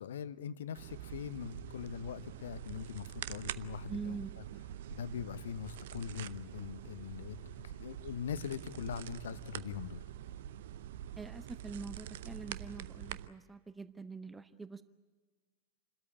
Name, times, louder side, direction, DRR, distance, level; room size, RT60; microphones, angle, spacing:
voice 1, 0.0-4.2 4.9-10.0, left 8 dB, 60° left, 15 dB, 0.9 m, -42 dB
sound 1, 0.8-13.3, right 11 dB, 55° right, 0.6 m, -45 dB
voice 2, 3.9-4.3 11.2-14.8, right 4 dB, 10° right, 13 dB, 0.7 m, -44 dB
28.5 x 13.5 x 10.0 m, 1.4 s
figure-of-eight pair, 90°, 0 cm